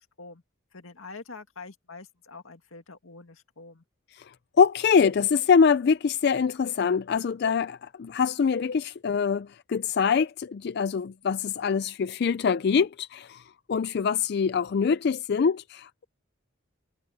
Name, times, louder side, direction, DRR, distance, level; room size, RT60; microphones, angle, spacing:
voice 1, 0.7-3.8, left 3 dB, 75° left, 2.1 m, -45 dB
voice 2, 4.2-16.1, left 6 dB, 50° left, 0.3 m, -24 dB
head